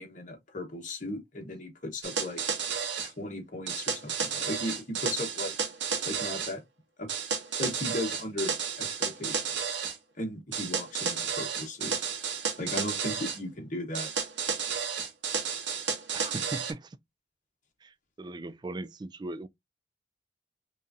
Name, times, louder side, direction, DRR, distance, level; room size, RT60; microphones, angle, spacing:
voice 1, 0.0-2.4 3.0-5.5 6.0-6.6 7.0-7.1 7.6-9.4 10.2-12.0 12.6-14.1, left 1 dB, 45° left, 1.3 m, -36 dB
sound 1, 2.0-3.1 3.7-6.5 7.1-10.0 10.5-13.4 13.9-16.7, right 6 dB, 90° right, 1.0 m, -32 dB
voice 2, 16.1-17.0 17.8-19.5, right 2 dB, 25° right, 0.3 m, -39 dB
5.2 x 2.6 x 2.7 m
head